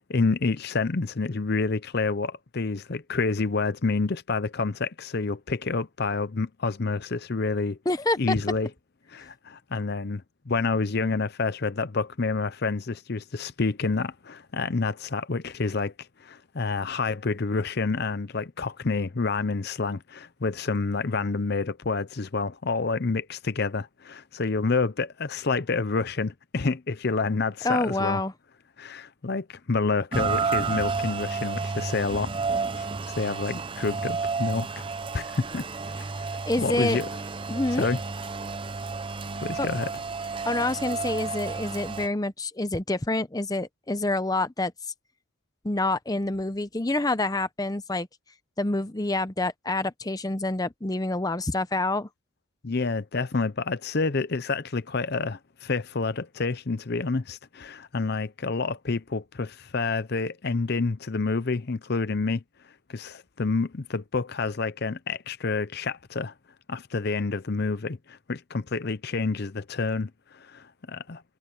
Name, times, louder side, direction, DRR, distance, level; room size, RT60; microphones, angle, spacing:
voice 1, 0.1-7.8 8.2-8.7 9.1-28.2 28.8-32.4 32.8-34.9 35.1-35.6 36.6-37.1 37.8-38.0 39.4-39.9 52.6-62.4 62.9-66.3 66.7-71.2, left 4 dB, 50° left, 0.7 m, -28 dB
voice 2, 7.9-8.3 27.6-28.3 36.5-37.0 37.5-37.9 39.6-39.7 40.5-44.7 45.6-48.1 48.6-52.1, left 2 dB, 15° left, 0.7 m, -27 dB
Rain, 30.1-42.1, right 4 dB, 25° right, 0.6 m, -31 dB
head